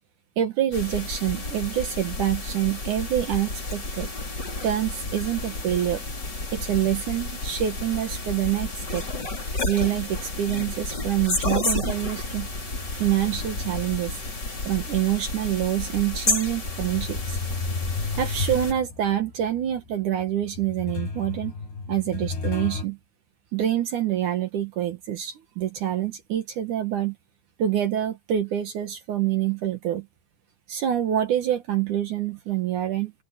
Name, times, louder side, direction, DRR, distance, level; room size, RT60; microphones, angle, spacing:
voice 1, 0.4-4.1 4.6-6.0 6.5-9.1 9.6-12.5 12.9-14.2 14.6-17.4 18.1-21.5 21.9-23.0 23.5-27.1 27.6-30.1 30.7-33.1, right 11 dB, 80° right, 1.7 m, -26 dB
sound 1, 0.7-18.7, left 2 dB, 20° left, 4.1 m, -31 dB
sound 2, 5.0-10.0 10.3-15.0 15.6-15.7 16.4-22.8, left 4 dB, 55° left, 9.0 m, -36 dB
open air
omnidirectional pair, 5.9 m